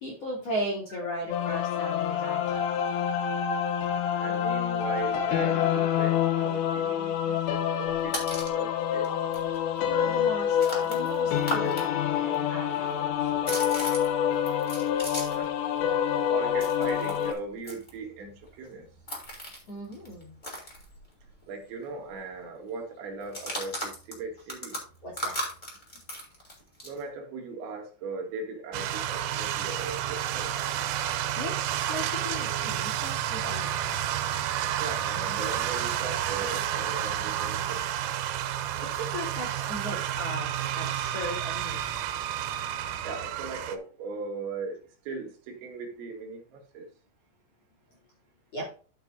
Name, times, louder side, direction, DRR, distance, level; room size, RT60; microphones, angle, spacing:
voice 1, 0.0-2.6 9.8-11.7 12.2-13.6 19.7-20.4 25.0-25.4 31.4-34.3 38.8-41.8 48.5-48.7, equal, 45° left, 2.4 m, -37 dB
sound 1, 1.3-17.3, left 9 dB, 85° left, 3.6 m, -27 dB
voice 2, 4.2-8.2 8.5-9.3 15.3-15.5 16.3-18.9 21.5-24.8 26.8-30.9 34.8-38.0 43.0-46.9, right 3 dB, 70° right, 3.8 m, -38 dB
sound 2, 7.8-8.6 9.0-9.1 9.3-11.9 12.1-15.5 15.8-21.4 21.7-21.8 22.1-22.5 23.2-27.0, equal, 15° left, 1.8 m, -38 dB
sound 3, 28.7-43.8, right 11 dB, 90° right, 3.5 m, -30 dB
13.0 x 6.1 x 2.7 m
omnidirectional pair, 5.6 m